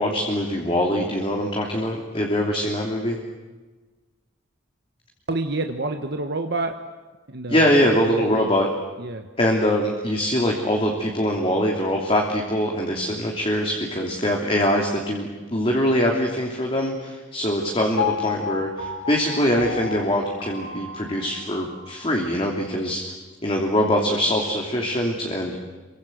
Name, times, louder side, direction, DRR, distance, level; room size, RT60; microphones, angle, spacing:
voice 1, 0.0-3.2 7.5-8.7 9.4-23.0 23.4-25.6, equal, 30° left, 0 dB, 3.0 m, -23 dB
voice 2, 5.3-6.8 7.3-8.6 9.0-9.3, right 2 dB, 55° right, 5 dB, 1.5 m, -28 dB
Piano, 18.0-22.1 22.6-22.7, left 6 dB, 75° left, 5.8 m, -31 dB
28.0 x 23.5 x 8.0 m, 1.3 s
head